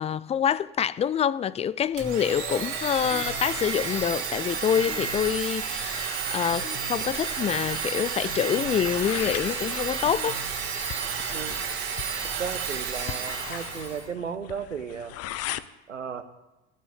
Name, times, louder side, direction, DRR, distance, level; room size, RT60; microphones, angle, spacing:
voice 1, 0.0-10.4, left 9 dB, 20° left, 0.3 m, -26 dB
Domestic sounds home sounds, 2.0-14.1, right 6 dB, 65° right, 3.2 m, -31 dB
sound 1, 3.0-11.3, left 7 dB, 75° left, 1.3 m, -46 dB
sound 2, 8.8-15.7, left 13 dB, 40° left, 0.7 m, -38 dB
voice 2, 12.4-15.1 15.9-16.2, right 7 dB, 85° right, 1.0 m, -34 dB
15.0 x 6.1 x 8.3 m
figure-of-eight pair, 65°, 36 cm